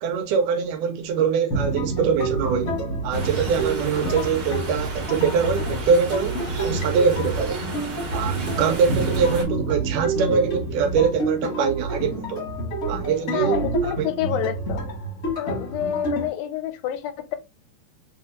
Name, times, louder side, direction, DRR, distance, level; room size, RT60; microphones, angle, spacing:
voice 1, 0.0-7.6 8.1-12.5 12.9-14.1 14.3-14.5, right 6 dB, 80° right, 2.0 m, -23 dB
sound 1, 1.5-16.3, right 2 dB, 45° left, 1.2 m, -28 dB
sound 2, 3.1-9.4, right 3 dB, 40° right, 1.9 m, -32 dB
voice 2, 13.3-14.8 15.4-17.4, left 11 dB, 90° left, 2.4 m, -28 dB
6.0 x 3.4 x 2.5 m
omnidirectional pair, 4.0 m